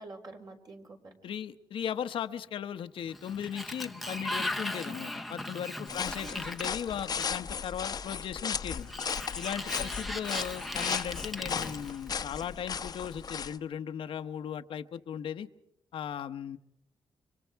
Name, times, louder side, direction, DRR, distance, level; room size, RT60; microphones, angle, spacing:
voice 1, 0.0-1.2 5.9-6.5 9.7-10.2, right 2 dB, 50° right, 2 dB, 4.8 m, -48 dB
voice 2, 1.2-8.9 9.3-15.5 15.9-16.6, left 9 dB, 80° left, 8 dB, 1.0 m, -37 dB
Sliding door, 3.0-7.6 8.7-12.4, left 1 dB, ahead, 1.0 m, -38 dB
sound 1, 5.9-13.6, left 6 dB, 50° left, 0.9 m, -36 dB
29.5 x 25.5 x 4.7 m, 0.80 s
cardioid pair, 115°, 9 cm